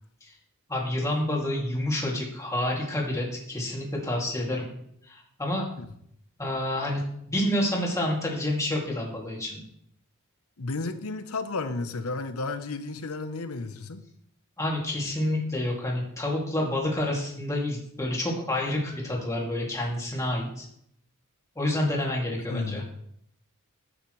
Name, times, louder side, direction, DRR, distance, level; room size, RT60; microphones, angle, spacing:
voice 1, 0.7-4.7 5.1-5.6 6.4-7.0 7.3-9.6 14.6-20.7 21.6-22.8, left 1 dB, 15° left, -3 dB, 2.5 m, -28 dB
voice 2, 10.6-14.0 22.4-22.9, left 3 dB, 75° left, 10 dB, 0.9 m, -33 dB
12.0 x 8.8 x 3.2 m, 0.71 s
head